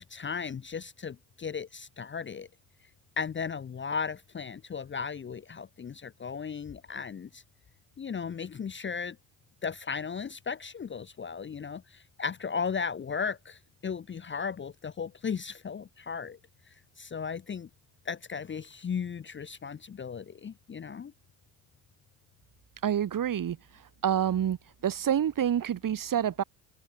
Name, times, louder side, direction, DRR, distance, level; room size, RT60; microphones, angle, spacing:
voice 1, 0.0-2.5 3.2-7.4 8.0-9.2 9.6-16.4 17.0-17.7 18.1-21.1, left 6 dB, 25° left, 0.8 m, -36 dB
voice 2, 22.8-23.6 24.0-24.6 24.8-26.4, right 9 dB, 45° right, 2.5 m, -27 dB
supercardioid pair, 85°, 44 cm